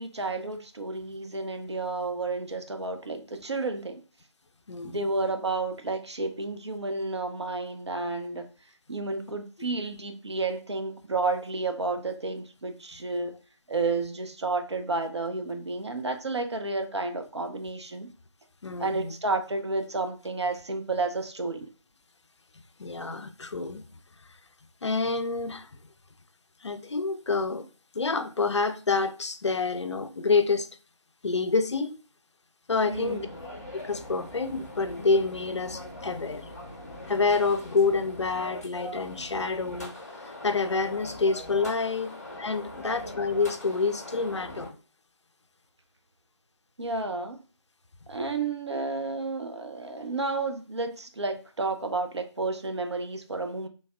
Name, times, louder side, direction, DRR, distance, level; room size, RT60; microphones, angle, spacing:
voice 1, 0.0-4.0 4.8-8.5 8.9-13.3 13.7-18.1 18.8-21.7 32.8-33.3 46.8-47.4 48.1-53.7, right 3 dB, 60° right, 0.5 m, -31 dB
voice 2, 4.7-5.0 18.6-19.1 22.8-23.8 24.8-25.7 26.6-27.7 28.0-30.7 31.2-32.0 32.7-33.2 33.7-36.4 37.1-39.9 40.4-44.7, left 4 dB, 65° left, 0.4 m, -27 dB
sound 1, 32.9-44.7, left 1 dB, 35° left, 0.9 m, -42 dB
3.2 x 2.2 x 2.4 m
figure-of-eight pair, 160°, 16 cm